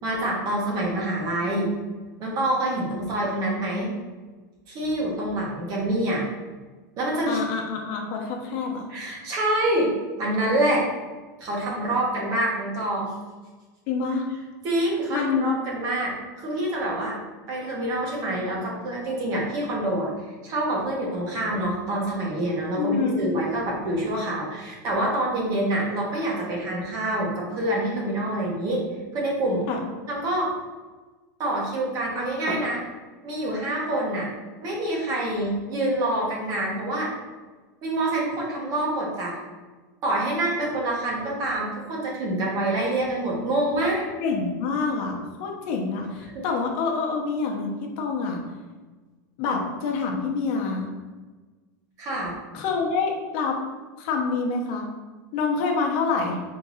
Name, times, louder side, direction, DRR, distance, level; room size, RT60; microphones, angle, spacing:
voice 1, 0.0-1.7 2.2-3.9 4.7-6.2 7.0-7.4 8.9-9.9 10.2-10.9 11.4-13.1 14.6-17.2 17.5-20.1 20.4-28.8 29.1-29.6 30.1-30.5 31.4-32.8 33.2-34.3 34.6-37.1 37.8-39.4 40.0-44.0 46.3-46.4 52.0-52.4, right 1 dB, 40° right, -3 dB, 1.3 m, -26 dB
voice 2, 7.3-8.9 13.9-14.3 15.1-15.5 22.8-23.2 29.7-29.8 44.2-48.4 49.4-50.9 52.5-53.6 54.0-54.9 55.3-56.4, left 4 dB, 50° left, 0 dB, 0.9 m, -26 dB
4.6 x 3.8 x 2.7 m, 1.3 s
supercardioid pair, 145°, 10 cm